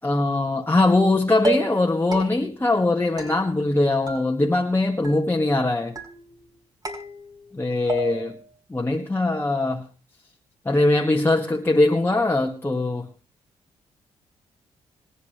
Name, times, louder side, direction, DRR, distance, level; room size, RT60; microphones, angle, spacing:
voice 1, 0.0-6.0 7.5-8.4 8.7-9.9 10.7-13.1, left 2 dB, 15° left, 0 dB, 2.0 m, -21 dB
sound 1, 0.8-1.1 1.4-1.9 2.1-2.6 3.2-3.8 4.1-4.7 5.0-5.6 6.0-6.5 6.9-7.6 7.9-8.4, right 2 dB, 30° right, 5.9 m, -32 dB
26.0 x 9.9 x 3.4 m, 0.37 s
supercardioid pair, 55°, 13 cm